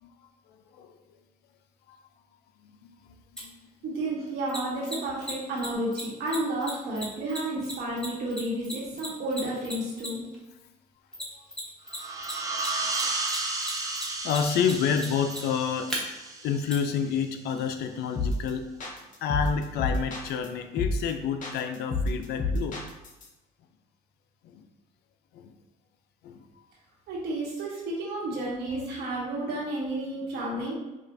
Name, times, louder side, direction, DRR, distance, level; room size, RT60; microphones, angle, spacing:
voice 1, 0.5-0.9 1.9-2.0 2.6-3.2 3.4-3.7 12.6-13.0 13.8-14.0 14.2-15.9 16.4-18.7 19.2-22.8 24.4-24.6 25.3-25.5 26.2-26.5, left 7 dB, 75° left, 7 dB, 0.4 m, -29 dB
Mechanisms, 3.4-3.5 4.5-10.3 11.1-12.0 12.2-16.0 16.7-16.8, equal, 5° left, 1.0 m, -36 dB
voice 2, 3.8-10.2 27.1-30.7, right 1 dB, 75° right, -4 dB, 1.4 m, -31 dB
sound 1, 11.9-17.2, right 3 dB, 20° right, 0.5 m, -33 dB
sound 2, 18.2-18.5 18.8-20.5 20.8-21.1 21.4-23.2, left 2 dB, 50° left, 0.7 m, -29 dB
5.1 x 2.4 x 2.6 m, 1.1 s
cardioid pair, 110°, 17 cm